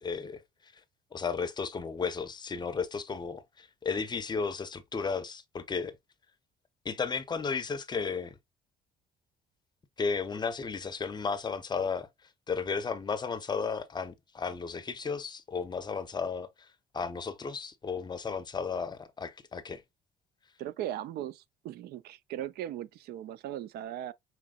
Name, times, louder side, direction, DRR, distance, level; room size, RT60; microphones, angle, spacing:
voice 1, 0.0-0.4 1.1-5.9 6.8-8.4 10.0-12.1 12.5-16.5 16.9-19.8, left 5 dB, 25° left, 0.6 m, -34 dB
voice 2, 20.6-24.1, right 12 dB, 70° right, 0.4 m, -38 dB
5.0 x 3.0 x 2.3 m
cardioid pair, 110°, 17 cm